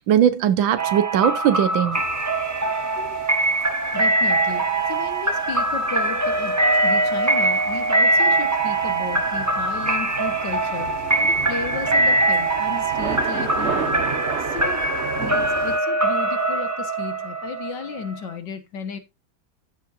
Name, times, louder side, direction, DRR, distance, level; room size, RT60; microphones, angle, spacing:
voice 1, 0.1-2.0 3.0-3.1, right 9 dB, 90° right, 1.7 m, -19 dB
sound 1, 0.8-18.4, right 2 dB, 15° right, 0.6 m, -22 dB
sound 2, 1.9-15.8, right 7 dB, 50° right, 0.8 m, -35 dB
voice 2, 3.9-14.0 14.4-14.8 15.2-19.0, left 6 dB, 65° left, 1.9 m, -34 dB
14.5 x 7.0 x 2.6 m
omnidirectional pair, 2.1 m